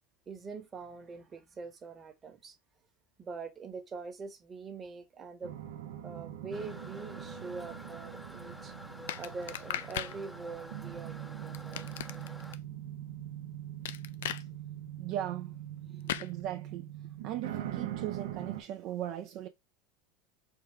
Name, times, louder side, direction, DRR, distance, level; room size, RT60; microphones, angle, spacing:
voice 1, 0.3-2.6 3.2-5.5 6.0-8.7 9.2-11.9, right 4 dB, 30° right, 1.0 m, -44 dB
sound 1, 5.4-18.6, right 11 dB, 80° right, 0.8 m, -42 dB
Toilet flush, 6.5-12.6, left 1 dB, ahead, 0.6 m, -49 dB
sound 2, 9.1-10.2 11.5-12.6 13.8-14.4 16.1-16.3, left 11 dB, 80° left, 0.3 m, -37 dB
voice 2, 15.0-15.6 16.0-16.9 17.2-19.5, right 12 dB, 55° right, 0.4 m, -38 dB
4.6 x 2.4 x 3.3 m
hypercardioid pair, 95°, 0 cm